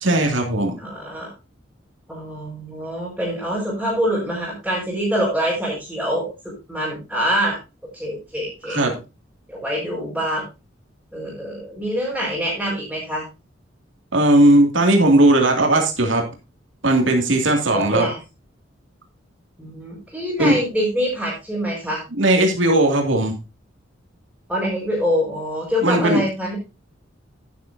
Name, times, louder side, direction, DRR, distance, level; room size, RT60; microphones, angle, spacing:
voice 1, 0.0-0.7 8.7-8.9 14.1-16.2 16.8-18.1 20.4-20.6 22.1-23.4 25.8-26.3, right 1 dB, 80° right, 2 dB, 2.4 m, -17 dB
voice 2, 0.8-1.3 2.1-7.6 7.9-8.8 9.5-10.5 11.1-13.2 17.7-18.2 19.6-22.0 24.5-26.6, equal, 5° right, -8 dB, 5.1 m, -25 dB
11.0 x 10.5 x 2.7 m, 0.28 s
head